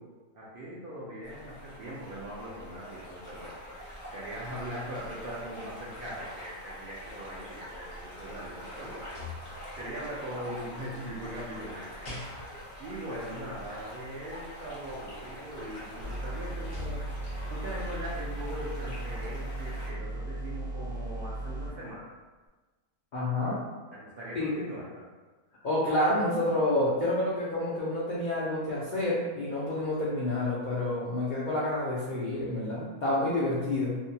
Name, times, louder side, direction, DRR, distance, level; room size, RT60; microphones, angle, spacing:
voice 1, 0.3-3.5 4.1-9.2 9.7-12.1 12.8-17.2 17.5-22.1 23.9-25.1, equal, 60° right, -7 dB, 0.5 m, -40 dB
sound 1, 1.2-19.9, equal, 20° left, 0.5 m, -44 dB
sound 2, 7.8-10.0 10.8-12.8 15.1-15.2 15.6-17.6 18.1-18.3, left 4 dB, 55° left, 0.8 m, -47 dB
sound 3, 16.0-21.7, right 1 dB, 80° right, 1.1 m, -36 dB
voice 2, 23.1-23.6 24.3-24.6 25.6-34.0, left 1 dB, 70° left, -7 dB, 0.4 m, -29 dB
2.6 x 2.1 x 2.7 m, 1.3 s
omnidirectional pair, 1.4 m